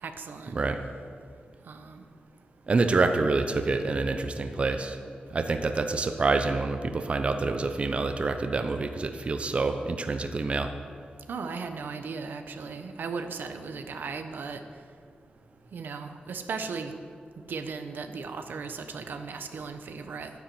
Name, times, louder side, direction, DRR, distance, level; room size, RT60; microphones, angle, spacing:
voice 1, 0.0-0.6 1.7-2.0 11.3-14.6 15.7-16.9 17.5-20.3, right 5 dB, 90° right, 7 dB, 1.1 m, -36 dB
voice 2, 2.7-5.0 5.3-10.7, right 3 dB, 40° right, 7 dB, 0.8 m, -27 dB
11.5 x 10.5 x 7.9 m, 2.2 s
wide cardioid pair, 160°, 3 cm